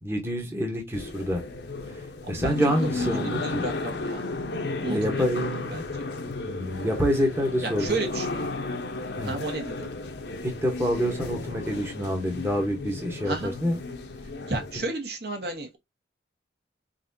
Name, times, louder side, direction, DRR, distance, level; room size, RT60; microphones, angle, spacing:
voice 1, 0.0-1.4 1.9-2.0 2.3-3.6 4.9-5.8 6.4-8.0 9.2-9.4 10.4-13.8, equal, 15° right, 1.1 m, -27 dB
sound 1, 0.9-14.8, left 2 dB, 60° left, 0.9 m, -34 dB
voice 2, 2.2-4.2 4.8-5.8 7.6-8.5 9.2-9.9 13.2-13.5 14.5-15.8, right 2 dB, 55° right, 1.4 m, -33 dB
4.0 x 4.0 x 2.7 m
head